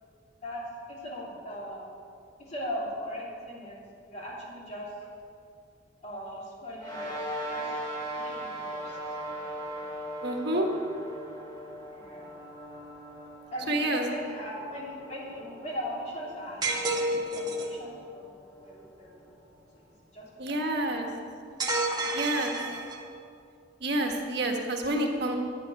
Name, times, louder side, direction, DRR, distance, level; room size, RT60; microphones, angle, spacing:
voice 1, 0.9-1.9 2.4-3.8 4.0-5.1 6.0-7.1 7.5-7.8 8.1-9.0 11.9-12.3 13.5-18.3 18.6-19.3 20.1-20.6 20.8-21.1 21.8-22.7, equal, 40° left, -5 dB, 3.2 m, -39 dB
sound 1, 6.8-19.5, right 1 dB, 20° left, 3.3 m, -40 dB
voice 2, 10.2-10.7 13.7-14.1 20.4-21.1 22.1-22.6 23.8-25.4, right 1 dB, 60° right, 2 dB, 1.5 m, -28 dB
sound 2, 16.6-17.8 21.6-23.2, right 2 dB, 20° right, 1.3 m, -30 dB
9.9 x 7.5 x 9.5 m, 2.4 s
head